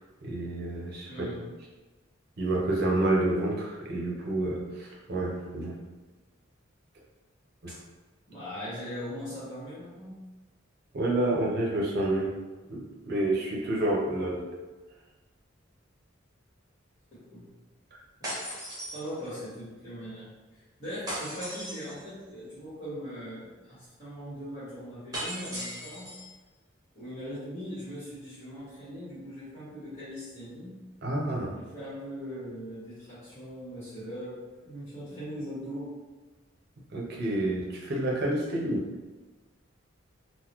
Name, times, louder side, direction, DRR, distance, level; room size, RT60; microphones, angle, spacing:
voice 1, 0.2-1.1 2.4-5.8 7.6-7.7 10.9-12.3 12.7-12.8 13.1-14.5 31.0-31.5 36.9-38.9, right 1 dB, 55° right, -3 dB, 0.7 m, -28 dB
voice 2, 1.1-1.4 7.7-7.8 8.3-10.2 17.1-17.5 18.9-20.3 20.8-26.2 26.9-30.8 31.4-35.9, equal, 35° left, -12 dB, 1.4 m, -40 dB
sound 1, 18.2-19.5 21.1-22.1 25.1-26.3, equal, 20° right, 0.9 m, -37 dB
3.8 x 2.1 x 2.9 m, 1.3 s
head